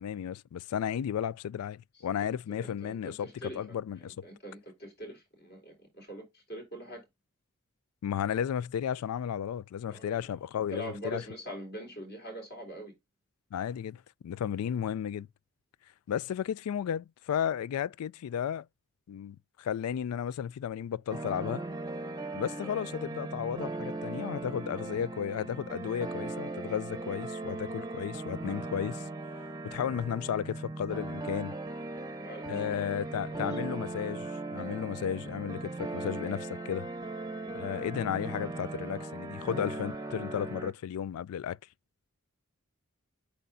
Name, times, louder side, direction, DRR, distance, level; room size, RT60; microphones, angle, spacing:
voice 1, 0.0-4.1 8.0-11.2 13.5-15.3 16.1-18.7 19.1-21.6 22.3-29.0 29.6-31.5 32.5-36.9 37.5-41.6, left 9 dB, 90° left, 0.3 m, -34 dB
voice 2, 2.6-7.0 9.9-10.3 10.7-12.9 32.2-32.7 33.1-33.6 37.4-37.5, right 1 dB, 50° left, 3.9 m, -43 dB
sound 1, 21.1-40.7, right 2 dB, 15° right, 0.8 m, -38 dB
8.4 x 4.5 x 2.6 m
head